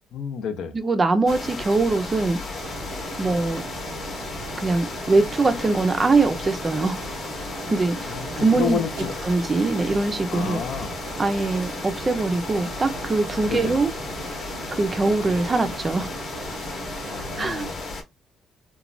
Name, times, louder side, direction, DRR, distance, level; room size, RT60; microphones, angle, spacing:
voice 1, 0.1-0.7 8.0-9.1 10.3-11.0 13.5-13.8 17.1-17.8, left 7 dB, 75° left, 0.5 m, -30 dB
voice 2, 0.7-2.4 3.2-3.6 4.6-7.0 7.7-8.8 9.2-10.6 11.2-13.9 14.7-16.1 17.4-17.7, right 3 dB, 20° right, 0.4 m, -22 dB
sound 1, 1.3-18.0, left 3 dB, 45° left, 0.8 m, -34 dB
sound 2, 2.6-17.5, right 7 dB, 90° right, 0.5 m, -41 dB
3.0 x 2.2 x 2.5 m
cardioid pair, 145°, 0 cm